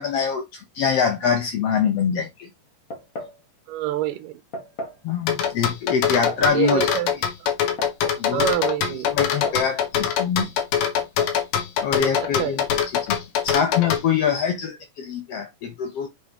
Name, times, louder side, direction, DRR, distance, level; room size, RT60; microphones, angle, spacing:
voice 1, 0.0-2.5 5.0-6.9 8.2-8.5 9.1-10.5 11.8-12.6 13.1-16.1, left 7 dB, 65° left, 1.6 m, -24 dB
sound 1, 2.9-3.4 4.5-5.0 6.0-6.5 7.5-8.3 9.2-9.7 10.0-10.1 11.0-11.4, equal, 45° left, 1.1 m, -35 dB
voice 2, 3.7-4.4 6.4-7.1 7.4-7.5 8.3-9.1 12.1-12.6, right 12 dB, 80° right, 2.3 m, -26 dB
sound 2, 5.3-14.0, left 8 dB, 85° left, 2.9 m, -23 dB
6.8 x 5.5 x 2.9 m
omnidirectional pair, 3.8 m